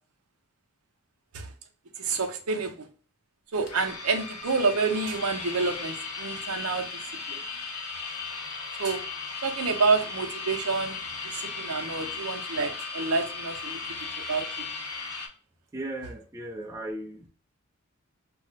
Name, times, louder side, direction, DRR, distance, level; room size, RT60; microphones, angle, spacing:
voice 1, 2.0-2.9 3.5-7.4 8.8-9.0 9.4-13.8 14.2-14.5, right 4 dB, 75° right, 5 dB, 0.6 m, -28 dB
sound 1, 3.7-15.3, left 4 dB, 85° left, 0.7 m, -36 dB
voice 2, 15.7-17.3, right 1 dB, 15° right, 2 dB, 0.3 m, -36 dB
2.3 x 2.1 x 3.7 m, 0.40 s
head